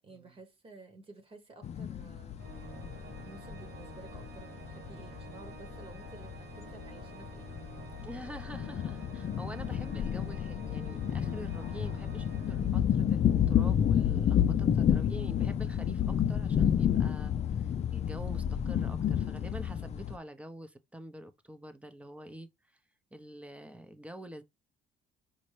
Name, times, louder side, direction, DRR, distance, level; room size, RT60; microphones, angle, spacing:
voice 1, 0.0-2.4 3.2-7.5, right 3 dB, 35° right, 1.3 m, -53 dB
sound 1, 1.6-20.2, left 9 dB, 40° left, 0.4 m, -30 dB
Organ, 2.4-13.3, right 6 dB, 70° right, 0.9 m, -50 dB
voice 2, 8.0-22.5 23.1-24.4, right 1 dB, 5° right, 0.7 m, -46 dB
5.3 x 2.8 x 3.2 m
cardioid pair, 110°, 17 cm